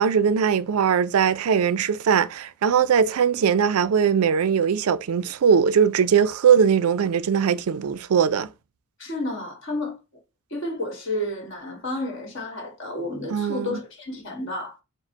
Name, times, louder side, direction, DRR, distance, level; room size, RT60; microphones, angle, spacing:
voice 1, 0.0-8.5 13.3-13.8, right 7 dB, 75° right, 0.4 m, -20 dB
voice 2, 9.0-10.0 10.5-14.7, left 1 dB, 55° left, 1.6 m, -31 dB
4.7 x 2.1 x 4.4 m
head